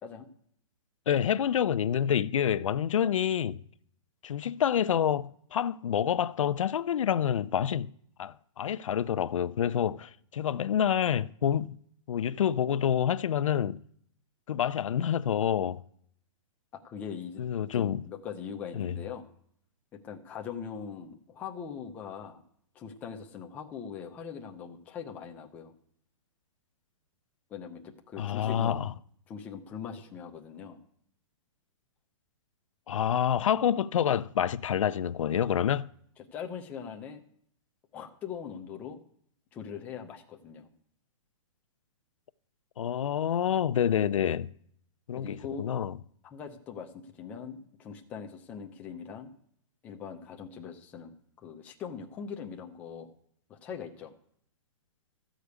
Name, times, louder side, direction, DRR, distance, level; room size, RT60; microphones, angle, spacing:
voice 1, 1.1-3.6 4.2-7.9 8.2-11.8 12.1-13.8 14.5-15.8 17.4-18.0 18.8-18.9 28.2-28.9 32.9-35.9 42.8-44.5 45.1-45.9, left 9 dB, 75° left, 0.5 m, -27 dB
voice 2, 16.7-17.4 17.8-19.3 19.9-22.4 22.7-25.7 27.5-28.8 29.3-30.8 36.3-37.2 37.9-39.0 39.5-40.7 45.2-45.7 46.2-49.3 49.8-53.1 53.5-54.1, left 7 dB, 10° left, 0.6 m, -41 dB
14.0 x 5.0 x 8.2 m
hypercardioid pair, 175°, 17 cm